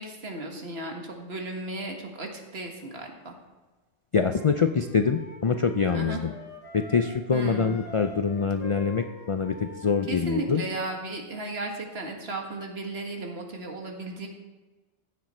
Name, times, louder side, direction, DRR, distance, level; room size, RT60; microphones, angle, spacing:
voice 1, 0.0-3.3 5.9-6.2 7.3-7.8 10.1-14.3, right 2 dB, 60° right, 2 dB, 1.8 m, -35 dB
voice 2, 4.1-6.3 6.7-10.6, left 5 dB, 55° left, 8 dB, 0.3 m, -25 dB
Wind instrument woodwind instrument, 4.2-7.2 7.5-10.6, left 1 dB, 70° left, 1.6 m, -45 dB
15.0 x 7.5 x 4.3 m, 1.2 s
omnidirectional pair, 1.2 m